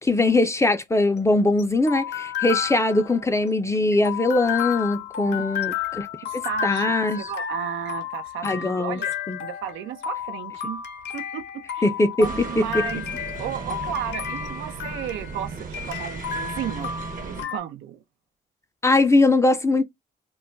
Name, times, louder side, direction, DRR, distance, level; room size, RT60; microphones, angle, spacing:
voice 1, 0.0-6.1 6.6-7.3 8.4-9.0 9.3-9.4 11.8-12.3 12.6-12.7 18.8-19.8, left 2 dB, 15° left, 0.4 m, -21 dB
sound 1, 0.9-17.6, left 9 dB, 60° left, 0.6 m, -32 dB
voice 2, 6.2-6.9 7.2-9.1 9.4-10.8 11.1-11.9 12.2-13.0 13.4-18.0, right 9 dB, 85° right, 0.5 m, -33 dB
sound 2, 12.2-17.4, right 4 dB, 45° right, 0.7 m, -36 dB
2.3 x 2.1 x 3.7 m
cardioid pair, 90°, 20 cm